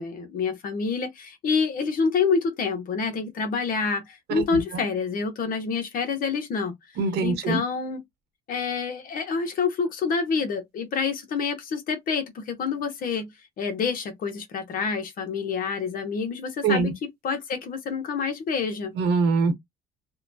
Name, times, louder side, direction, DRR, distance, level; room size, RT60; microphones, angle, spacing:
voice 1, 0.0-6.7 7.2-8.0 8.5-13.3 13.6-18.9, left 5 dB, 55° left, 0.9 m, -27 dB
voice 2, 4.4-4.8 7.0-7.6 16.6-16.9 19.0-19.5, right 4 dB, 75° right, 1.1 m, -23 dB
2.7 x 2.2 x 2.6 m
cardioid pair, 110°, 17 cm